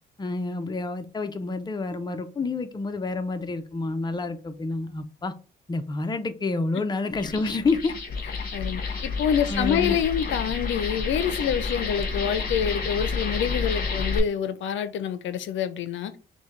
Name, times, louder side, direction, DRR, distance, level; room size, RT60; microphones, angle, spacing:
voice 1, 0.2-5.3 5.7-7.9 9.4-10.0, left 3 dB, 20° left, 0.6 m, -28 dB
sound 1, 7.1-14.2, left 4 dB, 50° left, 1.3 m, -30 dB
voice 2, 8.5-16.2, left 8 dB, 75° left, 0.5 m, -27 dB
6.0 x 2.2 x 3.2 m
cardioid pair, 90°, 20 cm